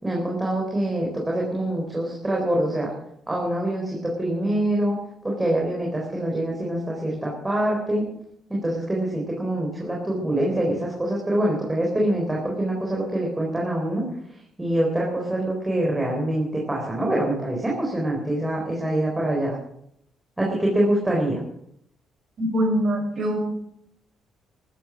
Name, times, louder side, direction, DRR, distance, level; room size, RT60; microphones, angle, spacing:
voice 1, 0.0-2.9 3.3-5.0 5.2-8.1 8.5-14.0 14.6-19.5 20.4-21.4, right 1 dB, 10° right, -2 dB, 4.0 m, -25 dB
voice 2, 22.4-23.4, equal, 45° right, 1 dB, 6.9 m, -23 dB
15.0 x 13.5 x 6.2 m, 0.75 s
cardioid pair, 130°, 0 cm